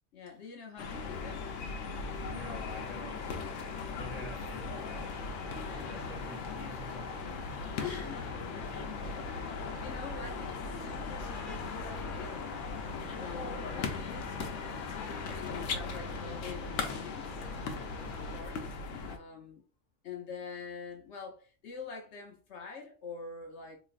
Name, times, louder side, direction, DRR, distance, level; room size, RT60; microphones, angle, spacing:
voice 1, 0.1-1.5 7.8-8.3 9.5-12.6 13.2-17.4 18.1-18.8 19.1-19.6 20.0-23.8, left 5 dB, 70° left, 1.1 m, -45 dB
sound 1, 0.8-19.2, left 4 dB, 90° left, 1.0 m, -38 dB
voice 2, 2.2-5.3 5.7-8.8, equal, 35° right, 1.0 m, -49 dB
sound 2, 4.8-18.4, left 3 dB, 50° left, 0.8 m, -47 dB
4.0 x 3.0 x 2.4 m
omnidirectional pair, 1.2 m